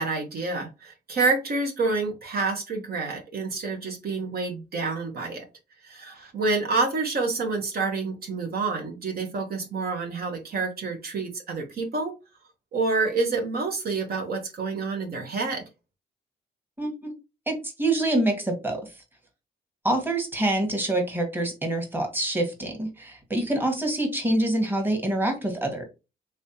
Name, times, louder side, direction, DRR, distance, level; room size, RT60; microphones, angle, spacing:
voice 1, 0.0-5.4 5.8-12.1 12.7-15.6, right 3 dB, 60° right, 3 dB, 1.1 m, -28 dB
voice 2, 16.8-17.1 17.5-18.9 19.8-25.9, right 1 dB, 10° right, 3 dB, 1.3 m, -26 dB
3.4 x 3.2 x 2.8 m, 0.27 s
cardioid pair, 90°, 18 cm